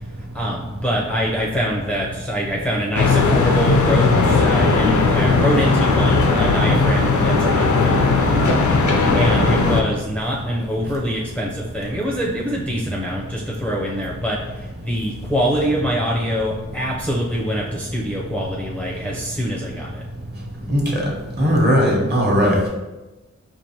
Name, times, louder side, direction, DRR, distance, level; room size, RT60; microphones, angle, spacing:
voice 1, 0.0-20.0, equal, 5° left, -4 dB, 0.6 m, -25 dB
sound 1, 2.9-9.8, left 3 dB, 80° left, 0.5 m, -17 dB
voice 2, 20.7-21.0 21.4-22.6, equal, 35° right, -2 dB, 1.1 m, -17 dB
4.6 x 2.5 x 2.8 m, 1.1 s
wide cardioid pair, 50°, 29 cm